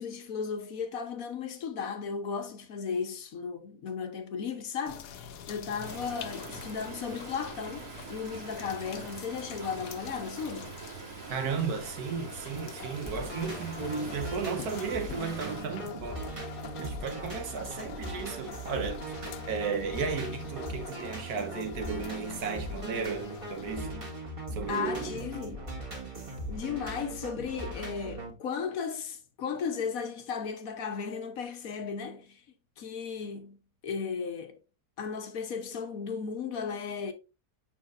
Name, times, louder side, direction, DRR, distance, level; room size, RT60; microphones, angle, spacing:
voice 1, 0.0-10.7 24.7-25.7 26.5-32.4 32.8-33.6 33.8-34.6 35.0-37.1, left 6 dB, 65° left, 1.2 m, -35 dB
sound 1, 4.9-23.8, left 8 dB, 80° left, 1.3 m, -46 dB
Stream, 5.8-15.6, right 4 dB, 85° right, 2.8 m, -44 dB
voice 2, 11.3-16.2 16.8-19.1 19.5-24.1 24.5-25.3, right 5 dB, 70° right, 1.5 m, -34 dB
sound 2, 13.1-28.3, right 1 dB, 20° right, 1.7 m, -40 dB
7.4 x 5.6 x 2.5 m
omnidirectional pair, 1.7 m